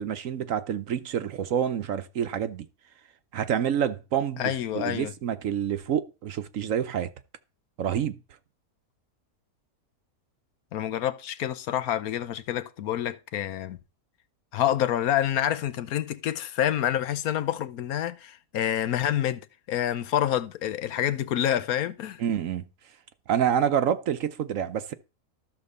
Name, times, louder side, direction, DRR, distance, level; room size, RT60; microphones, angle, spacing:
voice 1, 0.0-2.7 3.3-7.1 7.8-8.2 22.2-22.6 23.3-24.9, right 9 dB, 65° right, 1.0 m, -27 dB
voice 2, 4.4-5.1 10.7-13.8 14.5-19.4 19.7-22.2, left 11 dB, 75° left, 1.2 m, -27 dB
13.0 x 4.4 x 6.7 m
omnidirectional pair, 1.6 m